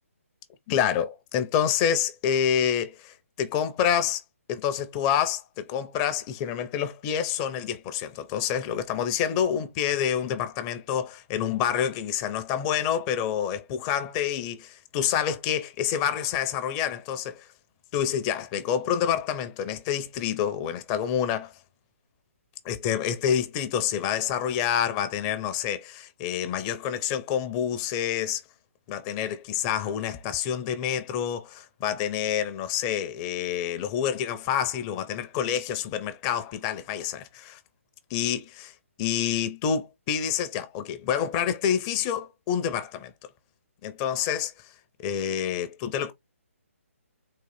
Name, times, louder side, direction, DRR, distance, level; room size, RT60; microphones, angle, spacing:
voice 1, 0.7-4.2 4.5-17.5 17.9-21.5 22.6-28.4 28.9-37.6 38.1-38.7 39.0-43.1 43.8-44.5 45.0-46.1, left 9 dB, 20° left, 0.4 m, -27 dB
3.7 x 2.5 x 3.2 m
figure-of-eight pair, 145°, 8 cm